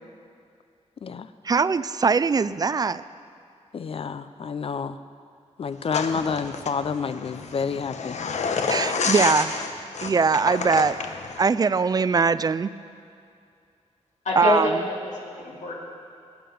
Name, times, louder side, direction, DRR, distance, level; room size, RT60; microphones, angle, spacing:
voice 1, 1.4-3.0 8.7-9.5 10.0-11.0 11.4-12.7 14.4-14.8, right 5 dB, 35° right, 15 dB, 0.3 m, -21 dB
voice 2, 3.7-5.0 5.6-8.2, left 5 dB, 50° left, 12 dB, 0.6 m, -29 dB
sound 1, 5.9-11.4, left 5 dB, 75° left, 1.0 m, -29 dB
voice 3, 14.2-15.7, left 2 dB, 90° left, -3 dB, 2.6 m, -26 dB
19.0 x 9.4 x 7.1 m, 2.4 s
wide cardioid pair, 165°, 12 cm